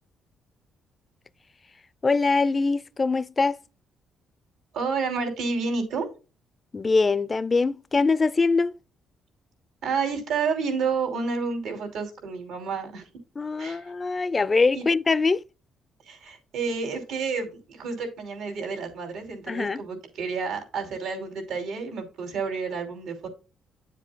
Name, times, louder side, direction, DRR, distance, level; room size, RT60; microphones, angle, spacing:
voice 1, 2.0-3.6 6.7-8.7 13.4-15.4 19.5-19.8, left 4 dB, 30° left, 0.4 m, -23 dB
voice 2, 4.7-6.1 9.8-13.1 13.6-13.9 14.7-14.8 16.0-23.3, right 5 dB, 85° right, 2.8 m, -30 dB
9.2 x 7.4 x 2.2 m
cardioid pair, 90°, 0 cm